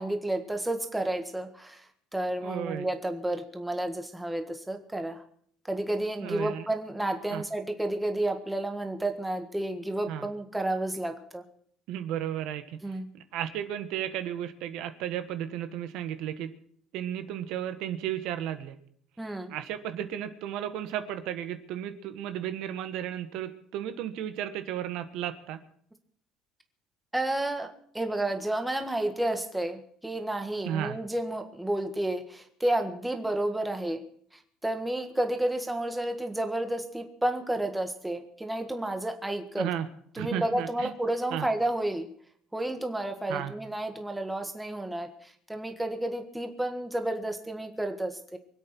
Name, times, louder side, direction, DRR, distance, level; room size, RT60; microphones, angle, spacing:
voice 1, 0.0-5.2 5.7-11.4 12.8-13.1 19.2-19.5 27.1-34.0 34.6-39.7 40.2-42.1 42.5-48.4, right 1 dB, 5° right, 6 dB, 1.6 m, -31 dB
voice 2, 2.4-2.9 6.2-6.7 7.3-7.4 10.1-10.3 11.9-16.5 16.9-18.8 19.5-25.6 30.6-31.0 39.6-39.9 40.2-40.9 41.3-41.5 43.3-43.5, right 10 dB, 70° right, 9 dB, 1.4 m, -34 dB
24.0 x 8.3 x 6.0 m, 0.63 s
cardioid pair, 130°, 0 cm